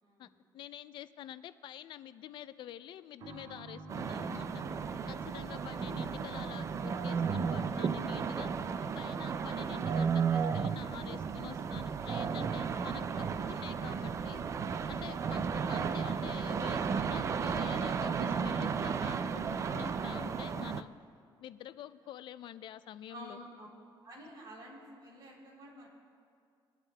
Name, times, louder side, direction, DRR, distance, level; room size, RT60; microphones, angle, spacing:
voice 1, 0.0-0.4 23.1-23.7 24.0-25.9, right 1 dB, 50° right, -2 dB, 3.1 m, -50 dB
voice 2, 0.5-4.5 5.1-8.5 9.0-14.4 14.9-20.9 21.4-23.4, left 11 dB, 60° left, 14 dB, 0.4 m, -47 dB
sound 1, 3.2-17.6 17.9-18.0 18.9-19.1, right 2 dB, 70° right, 1.6 m, -56 dB
sound 2, 3.9-20.8, right 6 dB, 35° right, 0.4 m, -34 dB
22.5 x 11.0 x 2.2 m, 2.3 s
cardioid pair, 150°, 9 cm